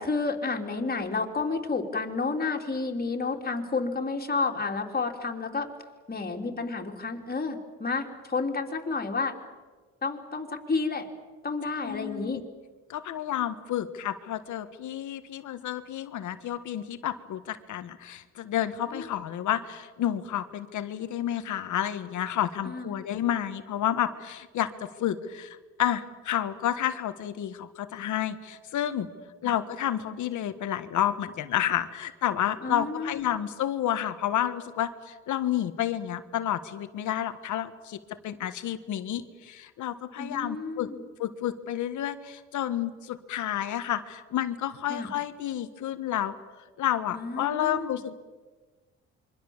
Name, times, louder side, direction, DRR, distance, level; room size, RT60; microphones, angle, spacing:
voice 1, 0.0-5.7 6.1-9.3 10.0-11.1 11.4-12.4 18.9-19.1 22.7-23.0 32.6-33.2 40.2-41.0 44.9-45.1 47.1-47.9, left 4 dB, 30° left, 2 dB, 3.5 m, -30 dB
voice 2, 11.8-12.4 12.9-29.1 29.4-38.0 38.2-40.9 41.2-46.3 46.8-48.1, left 11 dB, 75° left, 10 dB, 1.6 m, -30 dB
26.5 x 24.0 x 7.3 m, 1.4 s
cardioid pair, 90°, 30 cm